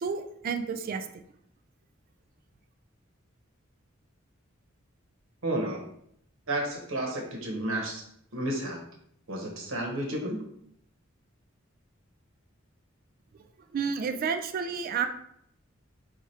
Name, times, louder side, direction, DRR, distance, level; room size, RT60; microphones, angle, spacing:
voice 1, 0.0-1.1 13.7-15.1, right 6 dB, 45° right, 8 dB, 0.3 m, -30 dB
voice 2, 5.4-5.8 6.5-8.0 8.3-8.8 9.3-10.4, right 1 dB, 90° right, 0 dB, 1.1 m, -31 dB
4.7 x 2.4 x 4.2 m, 0.70 s
head